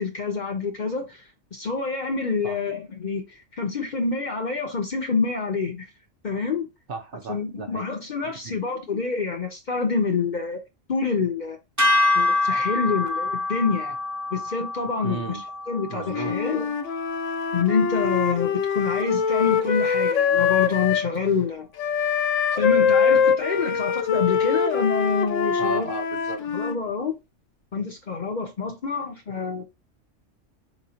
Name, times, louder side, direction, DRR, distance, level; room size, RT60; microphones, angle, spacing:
voice 1, 0.0-3.2 3.5-5.9 6.2-6.7 7.3-10.6 10.9-11.6 12.1-14.0 14.3-15.3 15.7-16.7 17.5-21.7 22.5-25.9 26.5-27.2 27.7-29.6, left 5 dB, 45° left, 0.7 m, -27 dB
voice 2, 6.9-7.9 8.2-8.6 15.0-15.4 15.9-16.4 25.6-26.4 26.8-27.0, right 4 dB, 55° right, 0.8 m, -35 dB
sound 1, 11.8-18.1, left 2 dB, 15° right, 0.8 m, -26 dB
Wind instrument woodwind instrument, 16.1-21.1 21.8-26.8, left 7 dB, 75° left, 1.0 m, -23 dB
4.6 x 3.0 x 2.7 m
omnidirectional pair, 1.3 m